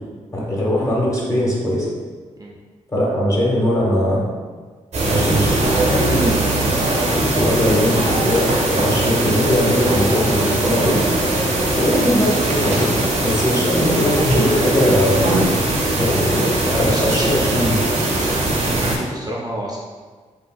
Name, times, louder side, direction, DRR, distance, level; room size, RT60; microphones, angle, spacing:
voice 1, 0.3-1.9 2.9-4.2 5.0-5.5 5.8-6.3 7.3-11.0 11.7-12.9 13.2-15.2 15.9-17.8, equal, 25° left, -5 dB, 1.1 m, -20 dB
sound 1, 4.9-19.0, right 1 dB, 55° right, 0.8 m, -20 dB
voice 2, 16.6-17.3 18.1-19.8, right 1 dB, 30° right, -3 dB, 0.5 m, -29 dB
3.5 x 2.7 x 2.3 m, 1.5 s
cardioid pair, 60°, 13 cm